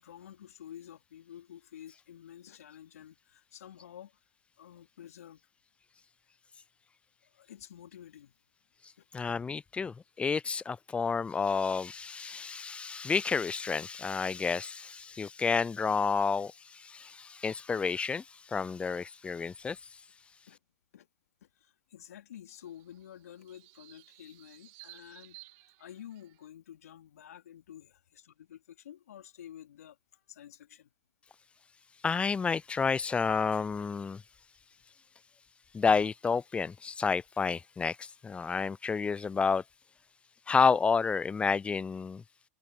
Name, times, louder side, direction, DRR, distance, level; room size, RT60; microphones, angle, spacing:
voice 1, 0.0-4.1 4.6-5.4 7.2-8.3 9.0-9.1 20.5-20.6 20.9-21.1 21.4-25.4 25.8-30.9, left 10 dB, 75° left, 2.8 m, -50 dB
voice 2, 9.1-20.0 32.0-34.2 35.7-39.6 40.5-42.2, left 5 dB, 15° left, 0.4 m, -30 dB
sound 1, 22.5-26.5, right 31 dB, 55° right, 3.2 m, -56 dB
hypercardioid pair, 95°, 8 cm